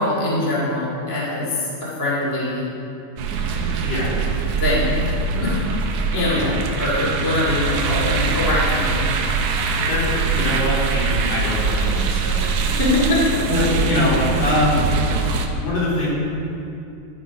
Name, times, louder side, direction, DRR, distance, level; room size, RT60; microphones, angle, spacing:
voice 1, 0.0-2.7 4.6-4.9 5.4-5.6 6.1-9.0 12.7-13.6, left 1 dB, 10° left, -7 dB, 0.8 m, -22 dB
sound 1, 3.2-15.5, right 4 dB, 80° right, 1.5 m, -22 dB
voice 2, 3.8-4.1 6.3-6.6 8.1-8.2 9.9-10.0 10.3-12.4 13.5-14.8 15.5-16.1, left 1 dB, 60° left, -8 dB, 3.1 m, -23 dB
11.5 x 3.9 x 4.7 m, 2.6 s
omnidirectional pair, 3.5 m